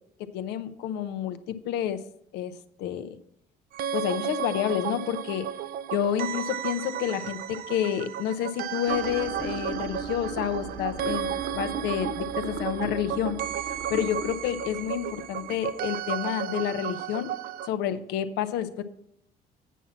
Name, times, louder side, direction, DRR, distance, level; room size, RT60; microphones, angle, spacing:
voice 1, 0.3-2.0 2.3-2.5 2.8-3.1 3.9-5.5 5.9-13.4 13.9-17.3 17.6-18.8, left 10 dB, 90° left, 11 dB, 0.7 m, -29 dB
sound 1, 3.7-17.7, right 10 dB, 60° right, 0.4 m, -33 dB
sound 2, 8.9-15.9, right 4 dB, 85° right, 2.0 m, -38 dB
8.2 x 5.8 x 7.2 m, 0.75 s
cardioid pair, 110°, 17 cm